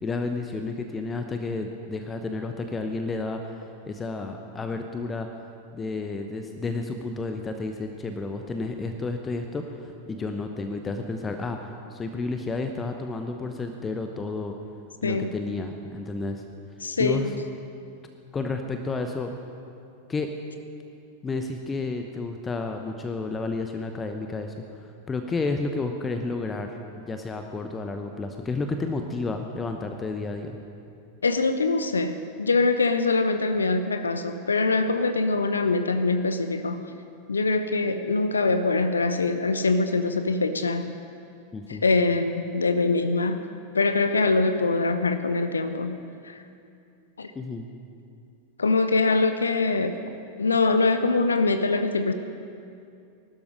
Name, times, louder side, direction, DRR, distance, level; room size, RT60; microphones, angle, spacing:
voice 1, 0.0-5.3 5.7-14.5 15.0-16.4 17.0-17.3 18.3-19.3 20.1-20.3 21.2-24.5 25.1-30.6 41.5-41.8 47.3-47.7, left 3 dB, 15° left, 5 dB, 0.9 m, -31 dB
voice 2, 15.0-15.3 16.8-17.3 31.2-36.9 37.3-40.9 41.7-43.4 43.7-46.4 47.2-47.3 48.6-50.0 50.4-52.1, left 3 dB, 75° left, 9 dB, 0.7 m, -23 dB
19.0 x 12.0 x 5.2 m, 2.5 s
figure-of-eight pair, 90°, 0 cm